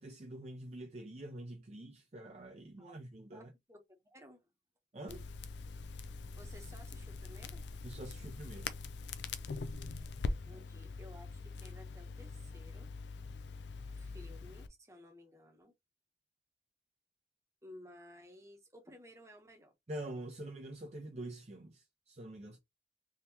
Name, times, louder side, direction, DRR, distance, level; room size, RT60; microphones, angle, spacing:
voice 1, 0.0-3.5 4.9-5.3 7.8-8.7 10.5-10.6 19.9-22.6, right 1 dB, 35° right, 0.5 m, -46 dB
voice 2, 3.3-4.5 6.3-7.6 10.2-12.9 13.9-15.7 17.6-19.7, left 1 dB, 15° right, 0.9 m, -56 dB
Crackle, 5.1-14.7, left 3 dB, 70° left, 0.4 m, -43 dB
3.6 x 2.8 x 2.8 m
head